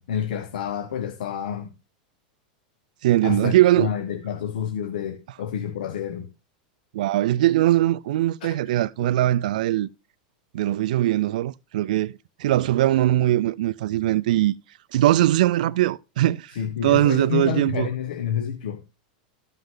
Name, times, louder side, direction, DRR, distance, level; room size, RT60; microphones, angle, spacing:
voice 1, 0.0-1.7 3.2-6.3 8.4-8.5 16.5-18.8, left 9 dB, 80° left, 1.1 m, -29 dB
voice 2, 3.0-3.9 6.9-9.9 10.5-14.6 14.9-16.6 16.8-17.9, right 14 dB, 70° right, 0.4 m, -21 dB
13.0 x 5.5 x 3.7 m
supercardioid pair, 165°, 4 cm